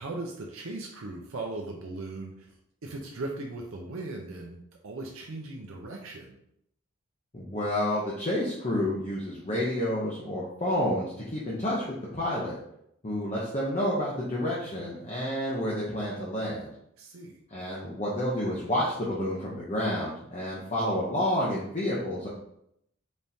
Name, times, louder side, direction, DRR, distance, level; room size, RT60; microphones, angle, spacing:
voice 1, 0.0-2.5 2.8-6.4 17.0-17.4, right 2 dB, 70° right, 0 dB, 0.6 m, -38 dB
voice 2, 7.3-12.5 13.0-16.7 17.5-22.3, left 1 dB, 30° left, -6 dB, 0.7 m, -29 dB
4.1 x 3.5 x 2.7 m, 0.75 s
head